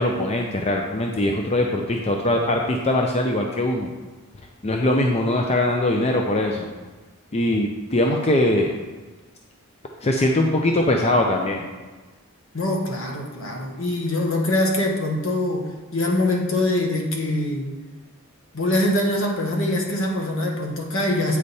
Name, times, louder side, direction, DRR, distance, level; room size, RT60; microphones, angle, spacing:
voice 1, 0.0-3.9 4.6-6.7 7.3-8.7 10.0-11.7, left 1 dB, 30° left, 1 dB, 0.5 m, -21 dB
voice 2, 12.5-17.7 18.5-21.4, left 1 dB, 65° left, 0 dB, 1.3 m, -23 dB
8.7 x 5.0 x 4.1 m, 1.3 s
head